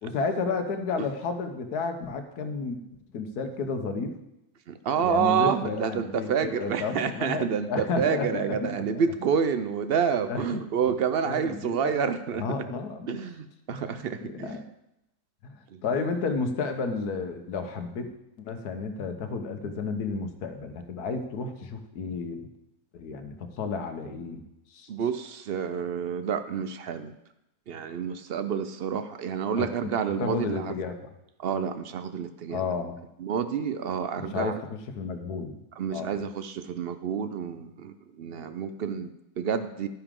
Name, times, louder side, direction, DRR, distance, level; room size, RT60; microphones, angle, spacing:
voice 1, 0.0-2.8 3.1-4.1 5.0-9.0 10.3-10.6 11.2-12.0 12.3-13.2 13.7-14.7 15.4-18.1 18.4-22.4 22.9-24.4 24.7-24.9 29.6-29.9 30.2-31.0 32.5-33.0 34.2-35.6 35.9-36.2, left 4 dB, 85° left, 7 dB, 1.5 m, -32 dB
voice 2, 4.7-12.4 13.1-14.5 15.7-15.8 24.9-27.1 27.7-30.7 31.4-32.6 33.2-34.5 35.8-39.9, right 7 dB, 65° right, 10 dB, 0.6 m, -28 dB
12.0 x 9.7 x 3.7 m, 0.88 s
omnidirectional pair, 1.6 m